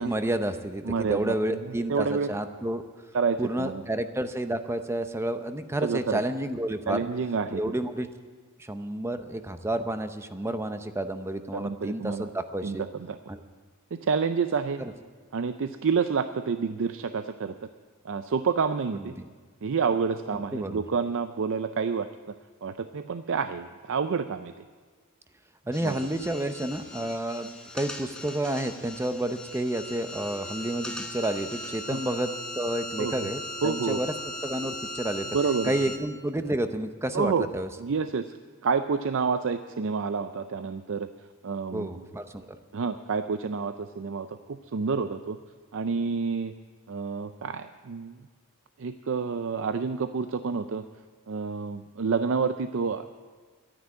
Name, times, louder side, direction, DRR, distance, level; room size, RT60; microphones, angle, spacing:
voice 1, 0.0-2.9 3.4-7.0 7.5-8.1 8.6-12.9 13.3-13.4 14.8-14.9 19.0-19.3 20.3-20.8 25.7-27.5 27.7-32.3 32.6-34.1 34.4-35.3 35.6-37.7 41.7-42.6, right 1 dB, 10° right, 9 dB, 0.6 m, -30 dB
voice 2, 0.8-1.6 1.9-2.3 3.1-3.8 5.8-6.2 6.9-7.7 11.5-12.3 12.6-12.8 13.1-13.2 13.9-14.8 15.3-17.5 18.0-19.1 19.6-22.1 22.6-24.5 25.8-26.0 31.9-32.0 33.0-33.1 33.6-34.0 35.3-35.7 37.1-37.5 37.8-38.3 38.6-41.1 41.4-41.9 42.7-45.4 45.7-46.5 46.9-48.2 48.8-50.8 51.3-53.0, right 5 dB, 60° right, 10 dB, 0.5 m, -28 dB
sound 1, 25.7-36.0, left 1 dB, 5° left, 1.1 m, -39 dB
12.5 x 9.9 x 8.4 m, 1.5 s
head